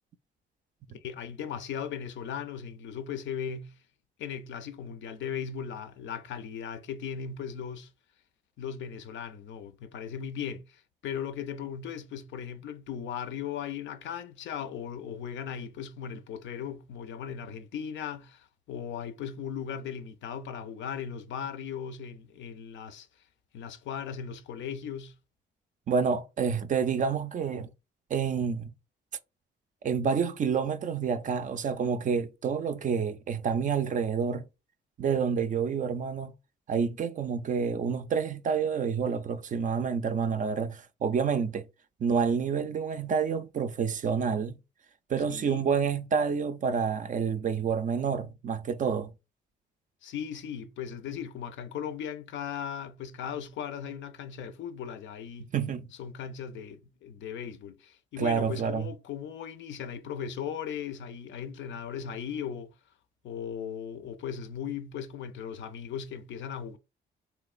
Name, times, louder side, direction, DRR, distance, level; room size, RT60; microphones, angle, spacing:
voice 1, 1.0-3.7 4.2-7.9 8.6-23.1 23.5-25.1 45.3-45.7 50.0-55.5 56.0-62.7 63.2-66.8, left 8 dB, 70° left, 0.5 m, -37 dB
voice 2, 25.9-27.7 28.1-28.7 29.8-34.5 35.0-36.3 36.7-41.6 42.0-44.6 45.1-49.1 55.4-55.9 58.2-58.9, right 6 dB, 40° right, 0.4 m, -28 dB
3.3 x 3.0 x 2.4 m
cardioid pair, 90°, 20 cm